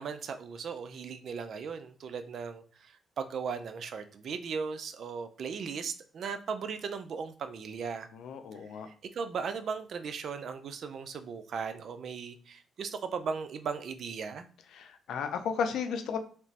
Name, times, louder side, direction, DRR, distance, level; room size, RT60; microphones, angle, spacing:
voice 1, 0.0-8.1 8.7-14.5, right 5 dB, 60° right, 9 dB, 0.4 m, -37 dB
voice 2, 8.1-8.9 14.7-16.2, left 6 dB, 75° left, 7 dB, 0.5 m, -34 dB
3.3 x 2.9 x 2.8 m, 0.41 s
cardioid pair, 90°, 0 cm